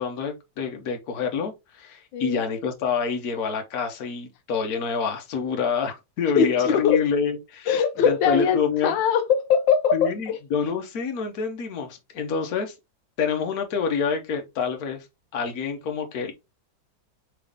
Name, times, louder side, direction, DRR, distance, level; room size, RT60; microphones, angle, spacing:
voice 1, 0.0-7.7 8.0-9.0 9.9-12.7 13.2-15.1 15.3-16.3, left 6 dB, 55° left, 1.3 m, -27 dB
voice 2, 6.4-7.0 7.7-10.4, left 7 dB, 85° left, 1.3 m, -21 dB
3.7 x 3.6 x 3.4 m
omnidirectional pair, 2.0 m